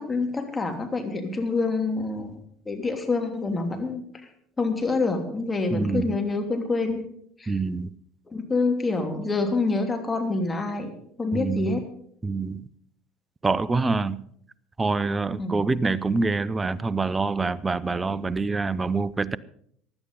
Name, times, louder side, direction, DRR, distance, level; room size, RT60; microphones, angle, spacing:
voice 1, 0.0-2.3 2.6-4.0 4.6-7.0 7.4-7.5 8.3-10.9 11.2-11.8 15.4-15.6, left 3 dB, 20° left, 5 dB, 3.2 m, -26 dB
voice 2, 5.7-6.2 7.5-7.9 11.3-11.8 12.2-12.7 13.4-14.2 14.8-19.4, right 3 dB, 20° right, 19 dB, 0.7 m, -26 dB
16.0 x 11.0 x 5.4 m, 0.66 s
hypercardioid pair, 70°, 0 cm